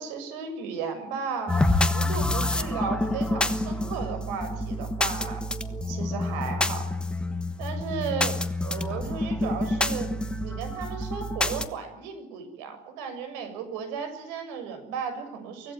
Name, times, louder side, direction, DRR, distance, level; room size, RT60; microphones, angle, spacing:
voice 1, 0.0-5.4 5.9-6.9 7.6-10.1 10.4-15.7, right 6 dB, 85° right, 9 dB, 6.9 m, -35 dB
sound 1, 1.5-11.7, left 1 dB, 5° left, 1.3 m, -27 dB
25.0 x 17.5 x 9.4 m, 0.83 s
cardioid pair, 160°, 19 cm